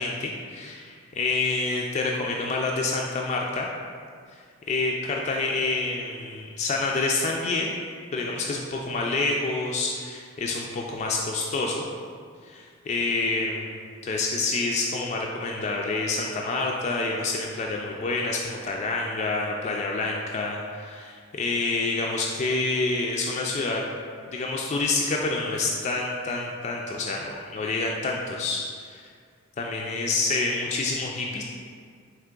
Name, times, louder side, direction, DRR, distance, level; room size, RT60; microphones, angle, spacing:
voice 1, 0.0-3.7 4.3-7.7 8.1-11.9 12.4-23.8 24.3-29.1 29.6-31.4, left 3 dB, 35° left, -1 dB, 0.3 m, -28 dB
4.4 x 3.0 x 3.7 m, 2.1 s
head